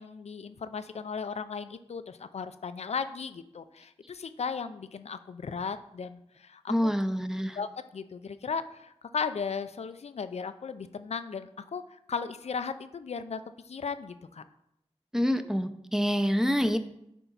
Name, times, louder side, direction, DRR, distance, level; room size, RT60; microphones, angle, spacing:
voice 1, 0.0-7.0 7.5-14.4, left 5 dB, 85° left, 11 dB, 0.5 m, -36 dB
voice 2, 6.7-7.6 15.1-16.8, equal, 5° right, 9 dB, 0.7 m, -26 dB
10.0 x 4.6 x 4.0 m, 0.81 s
cardioid pair, 40°, 11 cm